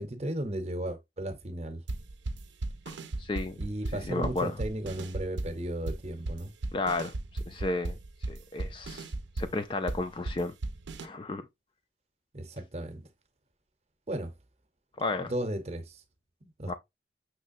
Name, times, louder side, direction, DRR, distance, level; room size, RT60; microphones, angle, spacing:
voice 1, 0.0-1.8 3.6-6.5 12.3-13.0 14.1-14.3 15.2-16.0 16.4-16.7, right 1 dB, 35° right, 0.8 m, -35 dB
sound 1, 1.9-11.1, right 2 dB, 75° right, 0.6 m, -36 dB
voice 2, 2.9-3.6 3.9-4.6 6.7-8.0 8.3-9.1 9.4-10.5 11.0-11.5 15.0-15.3 16.7-16.8, left 3 dB, 25° left, 0.3 m, -33 dB
5.9 x 3.2 x 2.6 m
head